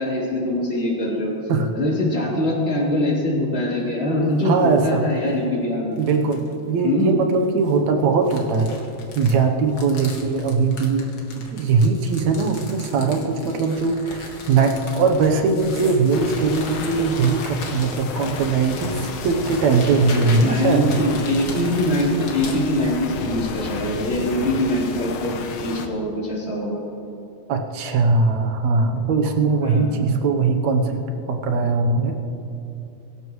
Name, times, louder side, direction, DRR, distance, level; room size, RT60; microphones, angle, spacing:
voice 1, 0.0-1.3 1.7-5.9 6.8-7.1 20.4-25.4 25.6-26.8 29.6-29.9, left 1 dB, 20° left, -6 dB, 3.6 m, -23 dB
sound 1, 4.3-4.8 5.3-5.4 6.0-6.5 7.4-22.6, left 3 dB, 45° left, 2.1 m, -38 dB
voice 2, 4.5-5.1 6.0-8.7 9.2-11.1 11.5-20.9 27.5-31.0 31.3-32.2, right 4 dB, 70° right, 4 dB, 2.1 m, -20 dB
sound 2, 16.1-25.9, left 5 dB, 90° left, 1.1 m, -32 dB
23.0 x 12.5 x 3.1 m, 2.9 s
omnidirectional pair, 3.6 m